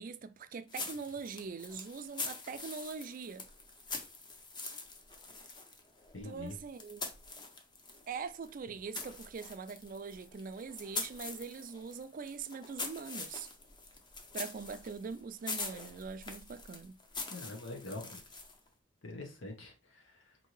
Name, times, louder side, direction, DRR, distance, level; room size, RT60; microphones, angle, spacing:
voice 1, 0.0-3.5 6.2-7.1 8.1-13.5 14.3-16.9, right 5 dB, 45° right, 0.3 m, -42 dB
sound 1, 0.7-8.1 8.4-18.7, left 3 dB, 25° left, 0.6 m, -44 dB
voice 2, 6.1-6.5 17.3-18.2 19.0-20.4, left 2 dB, 70° left, 1.1 m, -44 dB
4.4 x 2.7 x 3.1 m
head